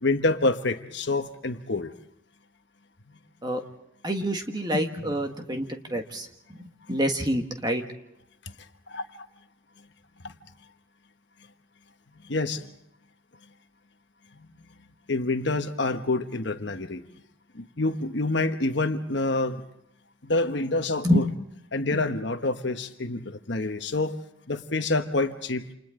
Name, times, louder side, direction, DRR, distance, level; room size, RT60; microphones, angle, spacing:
voice 1, 0.0-1.9 8.9-9.0 10.2-10.3 12.2-12.6 14.4-14.5 15.1-17.0 17.5-19.6 20.3-21.2 21.7-24.2 24.5-25.6, left 2 dB, 60° left, 7 dB, 1.3 m, -27 dB
voice 2, 4.0-7.8 21.0-21.3 21.9-22.0, equal, 20° right, 4 dB, 1.6 m, -27 dB
29.0 x 28.0 x 3.8 m, 0.79 s
head